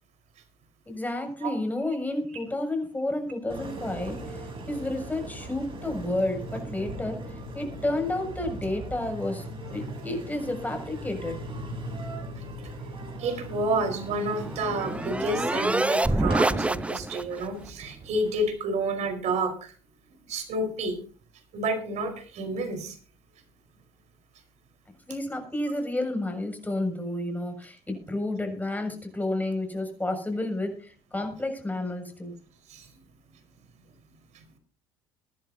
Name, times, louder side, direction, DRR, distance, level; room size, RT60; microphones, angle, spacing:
voice 1, 0.9-4.4 4.7-7.2 7.5-11.3 25.1-32.3, left 1 dB, 10° left, 5 dB, 6.8 m, -31 dB
Engine, 3.5-18.5, right 1 dB, 40° right, 6.3 m, -39 dB
voice 2, 12.4-12.7 13.2-19.7 20.3-21.0 21.5-23.0 32.7-32.9 34.3-34.4, right 2 dB, 60° right, 7 dB, 4.7 m, -30 dB
sound 1, 13.8-17.4, right 2 dB, 10° right, 0.8 m, -27 dB
23.0 x 11.0 x 2.8 m, 0.38 s
hypercardioid pair, 70°, 13 cm